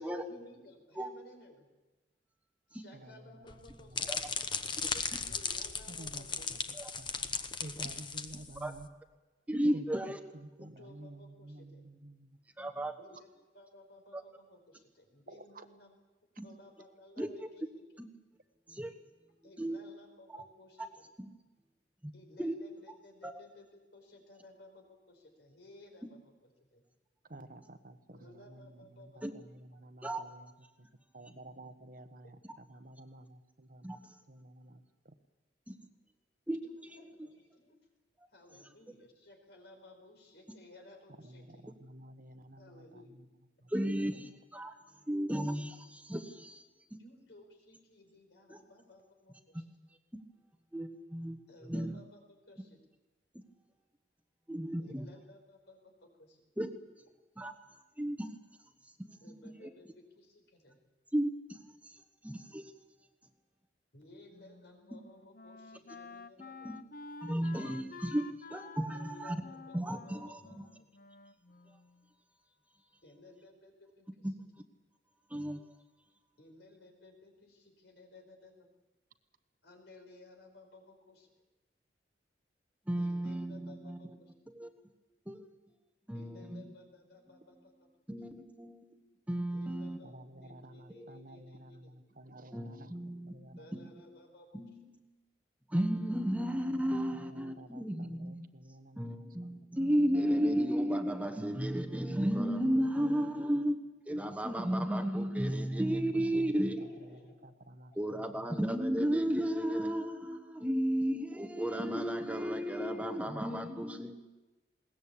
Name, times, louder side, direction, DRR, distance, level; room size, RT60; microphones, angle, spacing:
voice 1, 0.0-1.7 2.7-4.3 5.3-6.7 10.8-11.8 13.0-13.3 13.5-16.0 16.4-17.8 19.4-21.0 22.1-26.8 28.1-29.3 36.6-37.8 38.3-41.7 42.5-43.2 44.1-44.2 47.0-49.7 51.5-52.8 54.8-56.4 59.2-60.8 63.9-66.7 68.9-70.9 73.0-74.3 76.4-78.7 79.6-81.3 83.0-84.3 86.1-87.9 89.5-91.9 93.6-94.6 97.7-97.8 106.8-107.5, left 2 dB, 75° left, 4 dB, 4.8 m, -57 dB
voice 2, 2.9-3.5 3.8-4.3 5.9-6.6 7.0-8.9 9.7-12.4 12.8-12.9 15.3-15.7 27.2-30.5 30.8-30.9 31.1-34.0 34.3-35.2 41.2-43.3 43.6-43.7 44.2-44.3 90.0-92.9 93.2-93.9 97.1-99.9 101.3-101.4 103.3-103.4 105.7-106.0 106.3-108.7, right 1 dB, 50° right, 9 dB, 1.2 m, -52 dB
sound 1, 3.5-8.8, left 5 dB, 25° left, 1.0 m, -37 dB
voice 3, 4.8-5.2 6.7-6.9 8.6-8.7 9.5-10.2 12.6-12.9 14.1-14.2 16.4-16.5 17.2-17.3 18.7-18.9 19.6-19.8 20.3-20.4 21.2-21.3 22.0-22.1 22.4-22.5 23.2-23.3 29.2-29.3 30.0-30.2 33.8-34.0 35.7-35.8 36.5-36.6 43.7-44.1 44.5-44.7 45.1-46.6 48.5-48.6 50.7-51.4 51.6-52.0 54.5-55.1 56.6-56.7 57.4-57.5 58.0-58.3 59.6-59.7 61.1-61.3 61.8-61.9 62.2-62.6 66.6-66.7 67.2-69.4 69.7-70.7 74.2-74.4 75.3-75.6 82.9-84.0 84.5-84.7 85.3-85.5 86.1-86.6 88.1-89.0 89.3-90.0 91.0-91.1 92.5-94.0 94.5-95.0 95.7-98.5 99.0-103.8 104.1-106.9 108.0-114.2, equal, 10° right, 7 dB, 1.2 m, -33 dB
Wind instrument woodwind instrument, 64.3-72.1, left 3 dB, 50° left, 0.9 m, -50 dB
21.0 x 18.5 x 8.5 m, 1.1 s
head